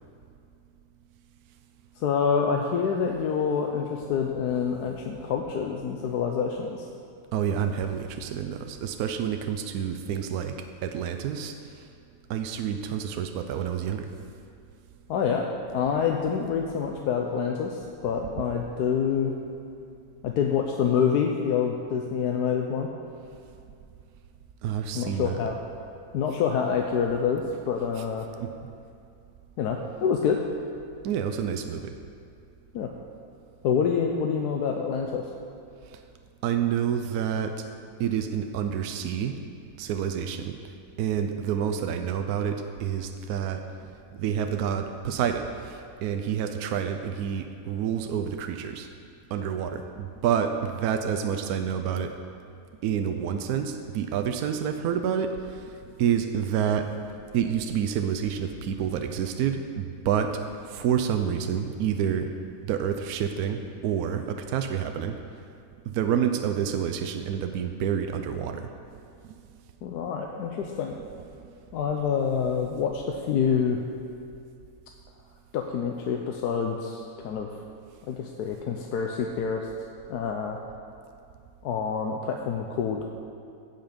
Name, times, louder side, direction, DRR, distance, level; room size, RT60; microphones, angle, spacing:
voice 1, 2.0-6.9 15.1-15.5 15.7-19.4 20.2-22.9 24.9-25.6 26.1-28.3 29.6-30.4 32.7-32.9 33.6-35.3 69.8-71.0 71.7-73.8 75.5-77.5 78.1-79.7 80.1-80.6 81.6-83.1, left 6 dB, 85° left, 2 dB, 1.2 m, -27 dB
voice 2, 7.3-10.5 10.8-11.5 12.3-14.1 24.6-25.4 28.4-28.5 31.0-32.0 36.4-37.6 38.0-39.4 39.8-40.5 41.0-43.6 44.1-48.9 49.3-52.2 52.8-57.0 57.3-60.4 60.6-62.3 62.7-65.2 65.9-69.0 69.2-69.3, right 8 dB, 75° right, 6 dB, 1.1 m, -28 dB
16.5 x 5.6 x 5.2 m, 2.5 s
omnidirectional pair, 1.7 m